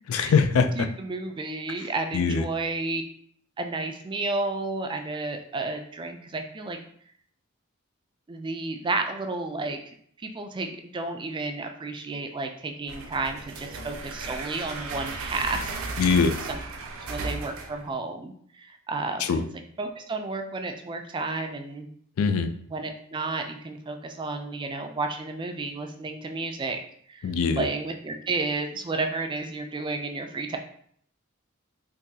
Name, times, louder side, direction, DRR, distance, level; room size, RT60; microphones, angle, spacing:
voice 1, 0.1-0.7 2.1-2.4 16.0-16.4 19.2-19.4 22.2-22.5 27.2-27.6, left 5 dB, 85° left, 9 dB, 0.4 m, -22 dB
voice 2, 0.8-3.0 3.6-6.8 8.3-9.8 10.2-16.1 16.5-16.6 17.1-19.2 19.8-21.9 22.7-27.3 27.6-30.6, right 3 dB, 25° right, 5 dB, 0.3 m, -32 dB
sound 1, 12.9-17.9, right 3 dB, 75° right, 0.5 m, -35 dB
3.8 x 2.6 x 2.7 m, 0.62 s
head